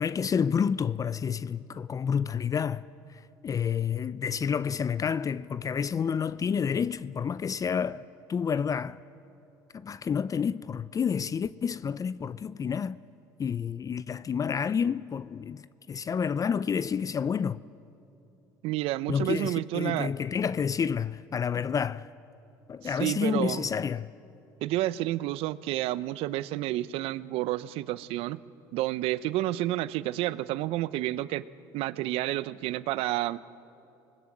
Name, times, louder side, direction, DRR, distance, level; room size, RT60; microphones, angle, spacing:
voice 1, 0.0-2.8 3.1-8.0 8.3-9.0 9.7-13.0 13.4-17.6 19.1-22.1 22.7-24.1, left 7 dB, 35° left, 0.5 m, -29 dB
voice 2, 18.6-20.1 22.8-23.7 24.6-28.4 28.7-31.4 31.7-33.4, right 16 dB, 70° right, 0.7 m, -30 dB
26.0 x 20.0 x 7.8 m
supercardioid pair, 75°, 10 cm